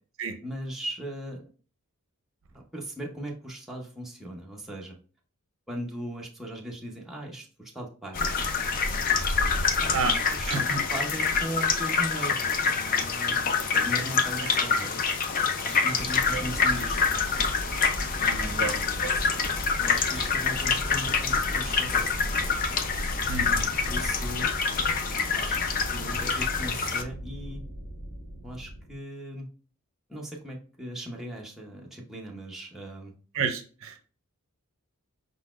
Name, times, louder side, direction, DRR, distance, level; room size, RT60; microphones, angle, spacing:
voice 1, 0.4-1.5 2.5-5.0 5.7-8.3 9.8-13.4 13.7-15.0 15.6-17.1 18.2-18.7 19.8-22.3 23.6-25.6 25.9-27.6 28.4-29.5 30.1-33.1, equal, ahead, -3 dB, 0.8 m, -38 dB
sound 1, 8.1-27.0, left 5 dB, 40° left, 0.5 m, -26 dB
voice 2, 10.5-10.8 14.4-14.5 16.1-16.4 18.4-18.7 19.0-19.1 23.3-23.7 33.3-34.0, right 5 dB, 60° right, 7 dB, 0.6 m, -31 dB
sound 2, 16.0-28.9, right 1 dB, 65° left, 2.2 m, -38 dB
5.0 x 4.0 x 2.4 m, 0.39 s
head